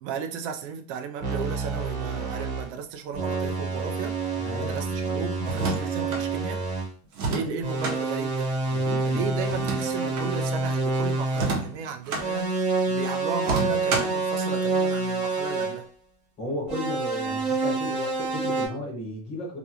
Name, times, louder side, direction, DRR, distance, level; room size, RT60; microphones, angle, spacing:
voice 1, 0.0-4.1 4.6-6.6 7.3-8.5 9.0-15.9, right 6 dB, 55° right, 0.5 m, -35 dB
sound 1, 1.2-2.7 3.1-6.9 7.6-11.7 12.2-15.8 16.7-18.7, right 3 dB, 35° right, 1.1 m, -28 dB
voice 2, 4.4-4.7 7.3-7.5 8.7-9.2 16.4-19.6, left 1 dB, 15° left, 0.5 m, -34 dB
sound 2, 5.4-6.2 7.1-8.0 9.4-10.3 11.3-12.3 13.4-14.2, right 3 dB, 85° right, 0.9 m, -29 dB
2.4 x 2.4 x 2.7 m
supercardioid pair, 170°, 43 cm